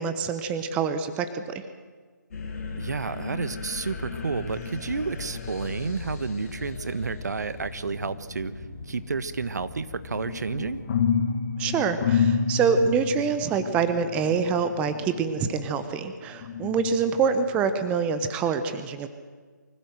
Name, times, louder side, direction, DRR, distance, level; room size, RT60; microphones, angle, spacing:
voice 1, 0.0-1.6 11.6-19.1, right 6 dB, 10° right, 10 dB, 1.0 m, -26 dB
sound 1, 2.3-11.1, left 4 dB, 45° left, 7.8 m, -38 dB
voice 2, 2.8-10.8, right 4 dB, 60° right, 13 dB, 1.4 m, -31 dB
sound 2, 10.1-15.9 16.4-17.5 18.0-18.2, left 6 dB, 30° left, 2.4 m, -29 dB
25.0 x 16.0 x 7.9 m, 1.5 s
figure-of-eight pair, 150°, 10 cm